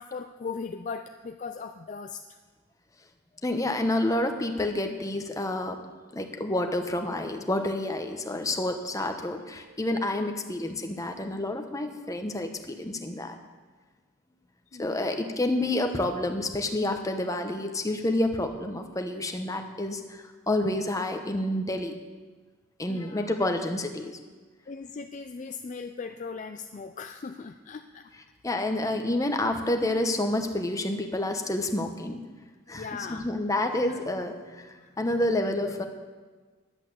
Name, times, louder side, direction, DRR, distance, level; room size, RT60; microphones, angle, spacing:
voice 1, 0.0-2.4 14.7-15.4 22.9-23.4 24.7-28.2 28.8-29.1 32.7-33.3 33.7-34.0 34.8-34.9, left 5 dB, 40° left, 7 dB, 0.4 m, -39 dB
voice 2, 3.4-5.8 6.1-13.3 14.8-22.0 22.8-24.1 28.4-32.2 32.7-35.9, left 1 dB, 15° left, 5 dB, 1.0 m, -29 dB
11.0 x 8.2 x 8.1 m, 1.4 s
head